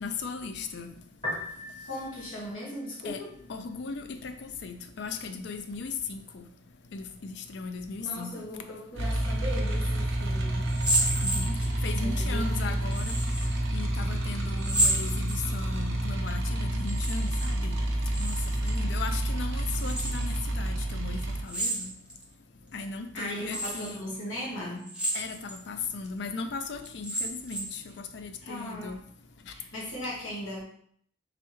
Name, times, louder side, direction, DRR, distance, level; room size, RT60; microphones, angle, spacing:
voice 1, 0.0-0.9 3.1-3.2 3.5-4.3 4.6-6.4 6.9-8.3 11.2-11.5 11.8-13.2 13.7-17.8 18.2-18.4 18.6-21.9 22.7-24.0 25.1-27.8 28.1-29.0, left 4 dB, 60° left, 8 dB, 0.4 m, -37 dB
Piano, 1.1-14.1, left 1 dB, 25° left, 1.1 m, -47 dB
voice 2, 1.9-3.3 8.0-10.7 12.0-12.8 23.1-25.0 28.4-29.0 29.5-30.6, equal, 85° left, -6 dB, 1.3 m, -38 dB
sound 1, 9.0-21.4, right 1 dB, 75° right, 0.7 m, -29 dB
sound 2, 10.7-11.9 12.9-13.5 14.6-15.8 16.8-17.5 17.8-18.8 19.7-20.3 21.5-22.2 22.8-22.9 23.5-23.9 24.8-25.6 26.0-26.1 26.8-27.8, right 1 dB, 5° right, 0.7 m, -30 dB
3.4 x 3.4 x 3.0 m, 0.64 s
head